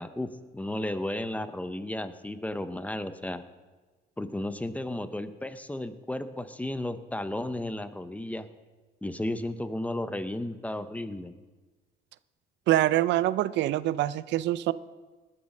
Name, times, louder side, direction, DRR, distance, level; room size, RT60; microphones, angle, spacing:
voice 1, 0.0-3.4 4.2-8.5 9.0-11.3, left 1 dB, 5° left, 11 dB, 0.8 m, -34 dB
voice 2, 12.7-14.7, right 14 dB, 70° right, 17 dB, 0.5 m, -25 dB
19.0 x 7.3 x 6.5 m, 1.3 s
cardioid pair, 100°, 19 cm